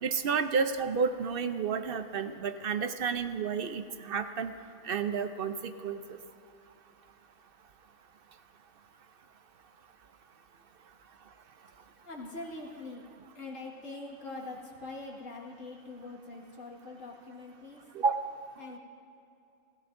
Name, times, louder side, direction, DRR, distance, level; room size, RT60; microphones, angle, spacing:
voice 1, 0.0-4.5 4.8-6.2 17.9-18.1, right 5 dB, 55° right, 9 dB, 0.7 m, -31 dB
voice 2, 12.0-13.0 13.3-17.8 18.6-18.8, left 2 dB, 75° left, -2 dB, 2.2 m, -43 dB
26.0 x 15.5 x 2.6 m, 2.8 s
omnidirectional pair, 1.4 m